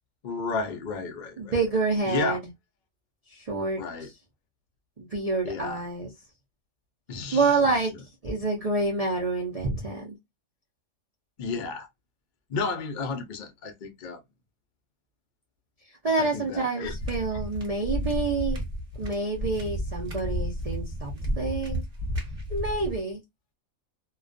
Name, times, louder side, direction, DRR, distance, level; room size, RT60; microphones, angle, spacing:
voice 1, 0.2-1.5 2.1-2.4 3.7-4.1 5.4-5.8 7.1-7.7 11.4-11.9 12.5-14.2 16.2-16.9, left 4 dB, 60° left, 0.5 m, -32 dB
voice 2, 1.4-2.4 3.3-4.1 5.0-6.1 7.3-10.2 15.8-18.6 19.0-21.8 22.5-23.2, right 3 dB, 80° right, 0.3 m, -28 dB
sound 1, 16.8-23.0, equal, 35° right, 0.8 m, -32 dB
2.3 x 2.2 x 2.4 m
omnidirectional pair, 1.4 m